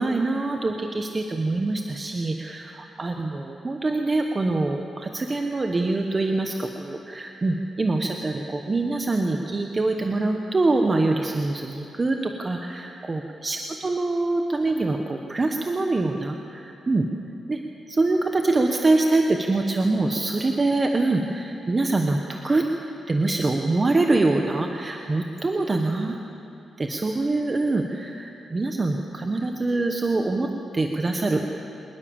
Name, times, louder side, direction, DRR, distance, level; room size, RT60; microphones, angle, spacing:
voice 1, 0.0-17.1 17.5-17.6 17.9-22.7 23.1-26.2 26.8-31.6, right 2 dB, 25° right, 3 dB, 1.2 m, -24 dB
25.0 x 20.5 x 7.2 m, 2.8 s
wide cardioid pair, 125°, 0 cm